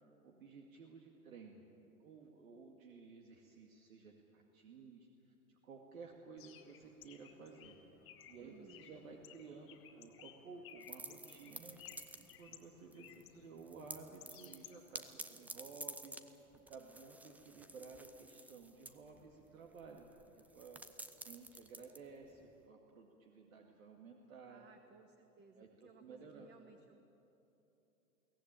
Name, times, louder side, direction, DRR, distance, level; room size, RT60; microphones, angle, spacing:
voice 1, 0.0-1.7 2.0-7.8 8.3-11.8 12.2-24.6 25.6-26.5, right 4 dB, 65° right, 1 dB, 2.3 m, -55 dB
Bird, 6.4-15.1, left 10 dB, 30° left, 1.6 m, -59 dB
voice 2, 8.4-9.2 24.5-27.0, right 6 dB, 25° right, 7 dB, 1.2 m, -62 dB
sound 1, 10.8-12.6 12.9-13.3 13.6-22.6, right 2 dB, 5° right, 0.6 m, -52 dB
22.5 x 17.0 x 8.9 m, 3.0 s
hypercardioid pair, 105°, 43 cm